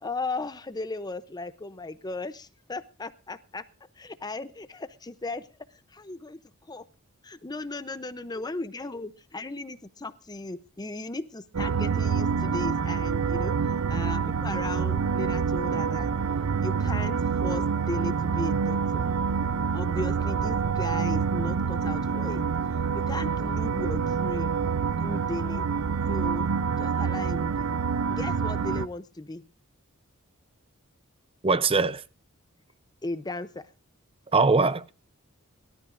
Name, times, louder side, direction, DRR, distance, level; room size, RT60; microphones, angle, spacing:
voice 1, 0.0-3.6 4.0-5.4 5.9-6.4 6.7-6.8 7.2-13.5 13.9-16.1 16.6-19.0 19.7-22.4 22.9-24.5 25.0-25.6 26.1-26.5 26.8-27.7 28.1-29.4 33.0-33.6, left 2 dB, 20° left, 0.7 m, -36 dB
sound 1, 11.5-28.9, right 6 dB, 75° right, 0.5 m, -27 dB
voice 2, 31.4-32.0 34.3-34.9, right 4 dB, 25° right, 0.6 m, -21 dB
23.0 x 13.0 x 2.6 m
head